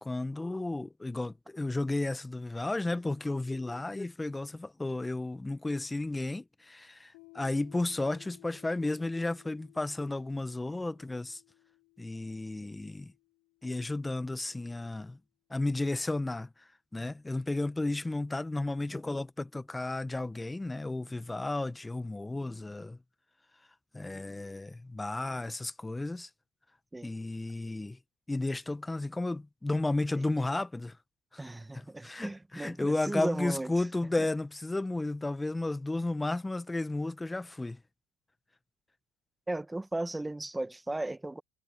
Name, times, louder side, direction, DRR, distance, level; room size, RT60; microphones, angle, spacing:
voice 1, 0.0-11.4 12.0-13.1 13.6-15.2 15.5-16.5 16.9-23.0 23.9-26.3 27.0-28.0 28.3-31.0 31.3-31.4 32.0-37.8, left 2 dB, 15° left, 1.2 m, -33 dB
Piano, 7.1-14.4, left 28 dB, 75° left, 5.6 m, -60 dB
voice 2, 31.4-33.9 34.2-34.3 39.5-41.4, right 2 dB, 10° right, 1.5 m, -36 dB
hypercardioid pair, 75°, 0 cm